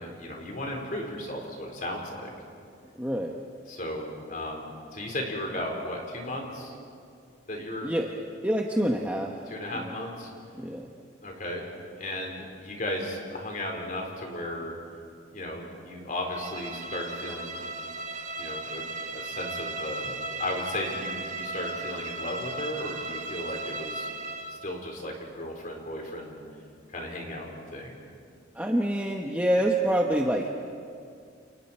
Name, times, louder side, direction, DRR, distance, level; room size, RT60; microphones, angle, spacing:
voice 1, 0.0-2.3 3.7-6.7 7.5-7.9 9.5-10.3 11.2-11.6 12.0-14.7 15.3-17.6 18.4-18.9 19.1-24.1 24.5-26.4 26.9-28.0, left 1 dB, 45° left, 1 dB, 4.3 m, -35 dB
voice 2, 3.0-3.4 7.8-8.1 8.4-9.3 9.7-9.9 10.6-10.9 28.5-30.5, right 1 dB, 10° right, 0 dB, 1.1 m, -26 dB
Bowed string instrument, 16.3-24.7, right 2 dB, 40° right, 1.5 m, -36 dB
29.5 x 29.0 x 4.5 m, 2.3 s
head